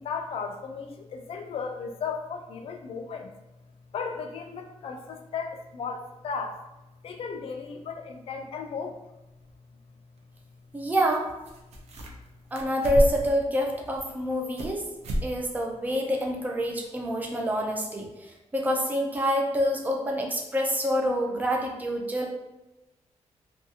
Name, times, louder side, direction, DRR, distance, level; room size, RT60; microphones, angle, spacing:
voice 1, 0.0-3.3 3.9-6.6 7.0-8.9, left 5 dB, 55° left, 4 dB, 0.4 m, -35 dB
voice 2, 10.7-11.3 12.5-14.8 15.2-22.3, equal, 15° right, 0 dB, 0.4 m, -27 dB
sound 1, 11.1-11.2 11.4-12.3 12.5-13.4 13.8-14.7 15.0-15.3 15.6-15.7 16.2-16.3, equal, 70° right, 0.5 m, -30 dB
2.6 x 2.3 x 2.7 m, 1.0 s
wide cardioid pair, 160°, 12 cm